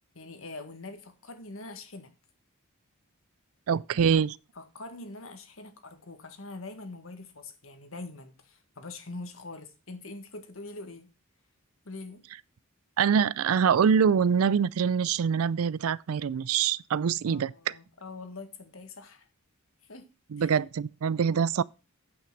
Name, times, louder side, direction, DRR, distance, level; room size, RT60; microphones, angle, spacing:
voice 1, 0.1-2.1 4.6-11.1 11.9-12.2 17.2-19.3 19.8-20.1 20.4-20.6 21.3-21.5, left 2 dB, 65° left, 1.7 m, -43 dB
voice 2, 3.7-4.4 13.0-17.5 20.3-21.6, right 7 dB, 70° right, 0.4 m, -24 dB
8.7 x 6.0 x 6.1 m
head